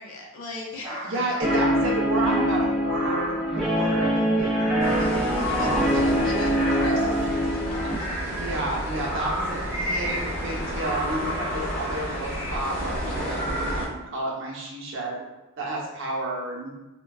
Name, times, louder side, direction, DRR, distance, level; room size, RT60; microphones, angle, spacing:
voice 1, 0.0-1.1 5.0-7.3 7.7-7.9 9.1-9.6, left 2 dB, 75° left, -1 dB, 0.7 m, -38 dB
sound 1, 0.8-2.1 2.8-3.7 4.4-13.8, equal, 25° right, 0.8 m, -33 dB
voice 2, 1.0-5.0 5.5-6.0 8.3-15.3 15.6-16.7, right 1 dB, 60° right, -4 dB, 0.8 m, -31 dB
Guitar, 1.4-8.0, equal, ahead, 0.4 m, -24 dB
sound 2, 4.8-13.9, equal, 45° left, 0.8 m, -31 dB
4.3 x 2.2 x 2.3 m, 1.0 s
head